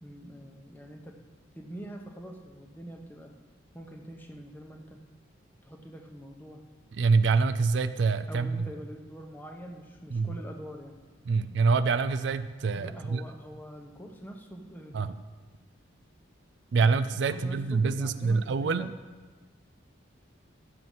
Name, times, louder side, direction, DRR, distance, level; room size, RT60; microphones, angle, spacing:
voice 1, 0.0-1.2 1.5-3.4 3.7-5.1 5.6-6.7 8.3-11.0 12.7-15.0 17.3-19.0, equal, 10° left, 3 dB, 0.9 m, -44 dB
voice 2, 7.0-8.7 10.1-10.4 11.3-13.2 14.9-15.1 16.7-18.9, right 4 dB, 60° right, 12 dB, 0.4 m, -26 dB
12.0 x 7.7 x 5.5 m, 1.3 s
head